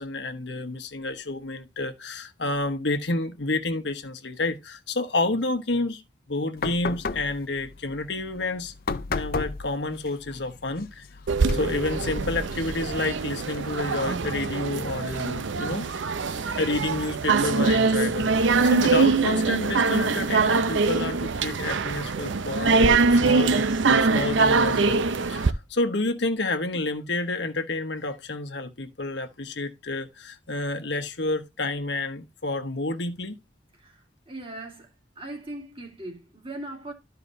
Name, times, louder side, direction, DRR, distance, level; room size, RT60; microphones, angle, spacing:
voice 1, 0.0-6.0 6.3-8.7 9.1-11.0 11.5-15.9 16.6-25.0 25.3-33.4, left 2 dB, 65° left, 1.2 m, -29 dB
sound 1, 6.6-14.0, left 4 dB, 50° left, 0.6 m, -35 dB
sound 2, 11.3-25.5, right 4 dB, 80° right, 0.6 m, -23 dB
voice 2, 33.8-34.9 35.2-36.9, right 1 dB, 30° right, 1.9 m, -39 dB
13.0 x 4.8 x 2.6 m
head